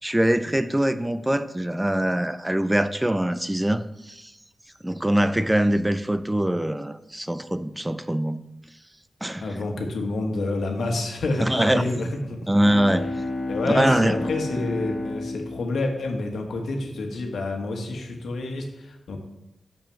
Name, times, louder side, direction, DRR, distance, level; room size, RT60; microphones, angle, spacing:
voice 1, 0.0-4.3 4.8-8.4 9.2-9.5 11.4-11.8 12.5-13.1 13.6-14.3, right 1 dB, 10° right, 11 dB, 0.4 m, -23 dB
voice 2, 9.4-12.5 13.5-19.2, left 2 dB, 80° left, 3 dB, 1.4 m, -28 dB
Bowed string instrument, 12.5-17.0, left 2 dB, 45° left, 1.1 m, -32 dB
6.9 x 5.9 x 5.7 m, 0.88 s
wide cardioid pair, 145°, 0 cm